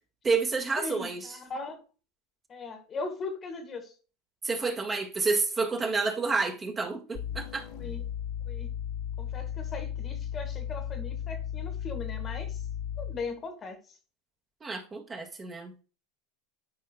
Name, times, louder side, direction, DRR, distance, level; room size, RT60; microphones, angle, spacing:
voice 1, 0.2-1.4 4.4-7.7 14.6-15.7, right 4 dB, 25° right, 1.9 m, -29 dB
voice 2, 0.8-1.8 2.5-3.9 6.2-6.3 7.7-8.0 8.4-8.7 9.2-12.6 13.0-13.8, left 3 dB, 35° left, 2.0 m, -39 dB
sound 1, 7.1-13.3, left 9 dB, 60° left, 2.0 m, -35 dB
12.5 x 4.6 x 2.3 m
hypercardioid pair, 90°, 0 cm